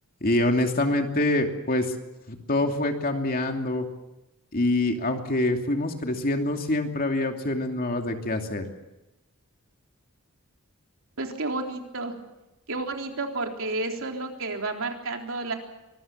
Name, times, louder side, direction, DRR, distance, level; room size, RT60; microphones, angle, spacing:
voice 1, 0.2-1.9 2.3-3.8 4.5-8.7, left 1 dB, 40° left, 4 dB, 2.7 m, -25 dB
voice 2, 11.2-12.1 12.7-15.5, right 2 dB, 65° right, 2 dB, 3.7 m, -31 dB
25.0 x 20.5 x 7.3 m, 0.99 s
head